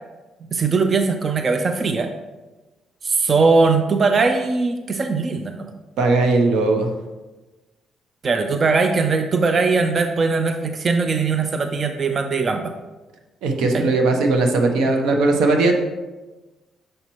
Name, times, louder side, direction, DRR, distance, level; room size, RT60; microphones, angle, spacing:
voice 1, 0.5-2.1 3.0-5.7 8.2-12.7 13.7-13.9 14.8-14.9, right 4 dB, 40° right, 7 dB, 0.5 m, -20 dB
voice 2, 6.0-6.9 13.4-15.8, right 3 dB, 85° right, 4 dB, 0.8 m, -18 dB
6.5 x 5.5 x 3.0 m, 1.2 s
cardioid pair, 90°, 0 cm